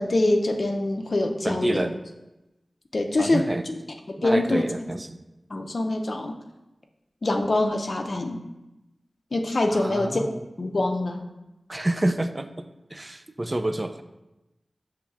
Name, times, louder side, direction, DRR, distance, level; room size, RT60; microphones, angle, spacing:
voice 1, 0.0-1.9 2.9-3.7 4.1-4.7 5.5-6.4 7.2-8.4 9.3-10.2 10.6-11.3, left 2 dB, 55° left, 3 dB, 0.5 m, -25 dB
voice 2, 1.4-2.0 3.2-3.7 4.2-5.2 9.7-10.4 11.7-14.0, right 1 dB, 30° right, 9 dB, 0.3 m, -28 dB
7.1 x 3.1 x 2.4 m, 0.97 s
wide cardioid pair, 65°, 0 cm